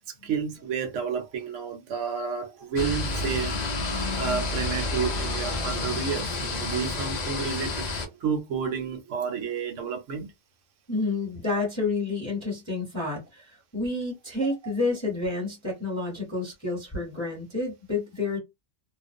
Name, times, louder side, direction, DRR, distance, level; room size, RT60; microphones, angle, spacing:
voice 1, 0.1-3.5 4.2-10.3 11.5-11.6, right 6 dB, 70° right, 1.0 m, -31 dB
sound 1, 2.8-8.1, left 2 dB, 70° left, 0.4 m, -29 dB
voice 2, 10.9-18.4, left 3 dB, 15° left, 0.9 m, -29 dB
2.4 x 2.0 x 2.5 m
omnidirectional pair, 1.4 m